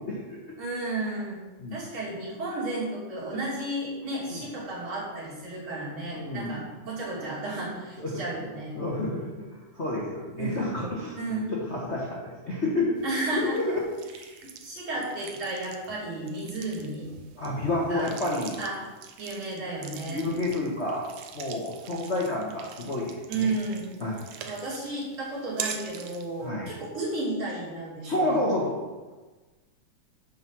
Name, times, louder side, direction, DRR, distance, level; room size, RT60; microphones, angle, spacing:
voice 1, 0.0-0.4 1.6-1.8 4.3-4.4 6.1-6.6 8.0-8.2 8.7-9.3 9.7-12.9 13.3-13.8 17.4-18.6 19.9-21.0 21.3-23.5 24.0-24.2 26.4-26.7 28.0-28.7, left 2 dB, 85° left, -4 dB, 0.6 m, -30 dB
voice 2, 0.6-1.4 1.7-8.8 9.3-9.4 10.4-10.7 11.2-11.5 13.0-13.7 14.3-17.1 17.9-18.1 18.6-18.7 19.2-20.3 23.3-23.9 24.5-28.5, right 2 dB, 45° right, -7 dB, 3.6 m, -33 dB
sound 1, 13.0-26.5, right 8 dB, 75° right, 1.6 m, -44 dB
7.4 x 5.4 x 6.0 m, 1.3 s
omnidirectional pair, 3.5 m